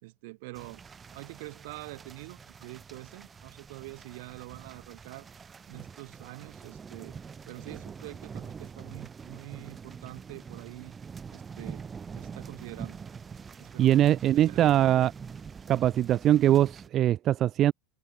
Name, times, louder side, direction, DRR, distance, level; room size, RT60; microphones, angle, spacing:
voice 1, 0.0-0.8 1.1-5.3 5.7-7.2 7.5-10.9 11.3-11.8 12.2-13.0 13.6-14.8, right 24 dB, 65° right, 4.8 m, -45 dB
sound 1, 0.5-16.9, right 6 dB, 20° right, 2.0 m, -45 dB
voice 2, 13.8-15.1 15.7-17.7, right 12 dB, 35° right, 0.4 m, -22 dB
supercardioid pair, 150°, 0 cm